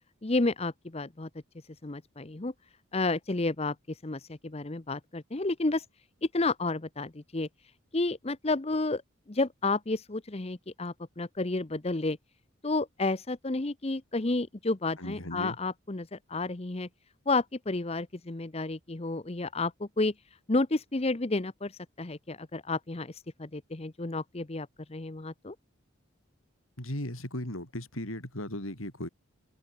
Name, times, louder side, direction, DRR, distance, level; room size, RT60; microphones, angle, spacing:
voice 1, 0.2-1.3 1.8-2.5 2.9-5.8 6.3-7.5 7.9-9.0 9.3-12.2 12.6-16.9 17.3-20.1 20.5-21.7 22.0-25.5, left 2 dB, 30° left, 0.8 m, -31 dB
voice 2, 15.0-15.6 26.8-29.1, left 1 dB, 80° left, 7.9 m, -37 dB
head